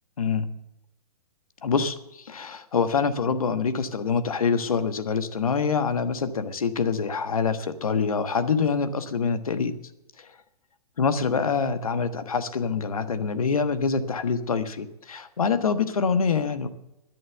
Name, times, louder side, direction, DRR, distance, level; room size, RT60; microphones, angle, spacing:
voice 1, 0.2-0.5 1.6-9.7 10.2-10.3 11.0-16.7, left 5 dB, 65° left, 11 dB, 1.3 m, -25 dB
12.5 x 10.5 x 7.0 m, 0.89 s
figure-of-eight pair, 120°, 20 cm